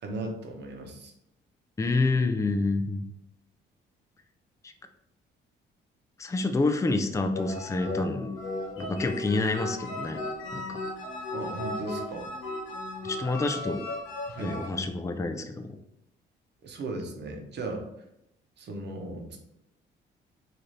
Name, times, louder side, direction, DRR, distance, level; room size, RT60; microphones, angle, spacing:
voice 1, 0.0-1.1 11.3-12.3 14.3-14.6 16.6-17.9 18.6-19.4, right 2 dB, 60° right, 3 dB, 0.9 m, -36 dB
voice 2, 1.8-3.0 4.6-4.7 6.2-8.3 8.8-10.2 10.5-10.8 13.0-13.8 14.4-15.8, left 3 dB, 15° left, 7 dB, 0.4 m, -28 dB
sound 1, 7.3-14.7, left 2 dB, 80° left, 1.1 m, -36 dB
3.2 x 2.6 x 3.9 m, 0.82 s
cardioid pair, 90°, 20 cm